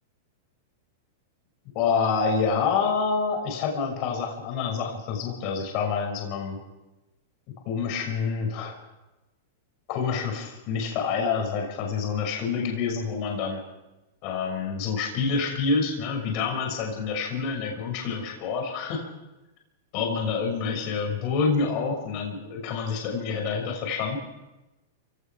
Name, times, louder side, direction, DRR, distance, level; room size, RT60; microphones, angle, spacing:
voice 1, 1.7-6.6 7.6-8.8 9.9-13.6 14.2-19.1 19.9-24.2, left 5 dB, 45° left, 2 dB, 5.9 m, -27 dB
28.0 x 18.0 x 6.1 m, 1.0 s
supercardioid pair, 150°, 0 cm